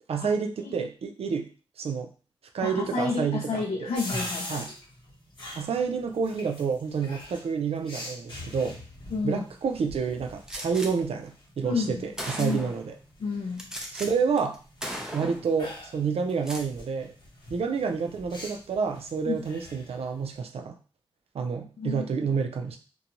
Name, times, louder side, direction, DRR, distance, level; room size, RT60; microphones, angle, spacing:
voice 1, 0.1-1.5 1.8-2.1 2.5-3.9 4.5-4.7 5.6-8.8 9.2-12.9 13.9-14.6 15.1-17.1 17.5-20.7 21.3-22.8, right 5 dB, 90° right, 4 dB, 0.4 m, -29 dB
voice 2, 2.6-4.7 9.1-9.4 11.6-12.1 12.4-12.6 13.2-13.7 19.3-19.4 21.8-22.4, left 4 dB, 70° left, -1 dB, 0.4 m, -30 dB
sound 1, 3.9-20.4, left 1 dB, 50° left, 0.9 m, -44 dB
Gunshot gunfire, 10.5-10.9 11.7-11.8 12.2-12.9 13.6-14.1 14.4-14.6 14.8-15.5 16.3-16.7, equal, 5° right, 0.4 m, -36 dB
2.5 x 2.2 x 2.8 m, 0.37 s
wide cardioid pair, 145°, 10 cm